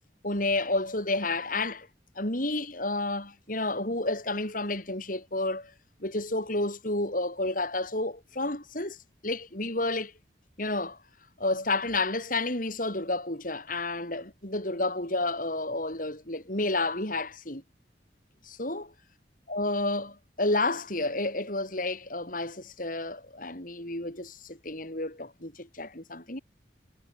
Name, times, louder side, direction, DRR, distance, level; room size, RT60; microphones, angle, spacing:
voice 1, 0.2-1.9 2.2-5.7 6.0-9.0 9.2-10.1 10.6-11.0 11.4-17.6 18.4-18.9 19.5-26.4, left 2 dB, 45° left, 6.0 m, -30 dB
head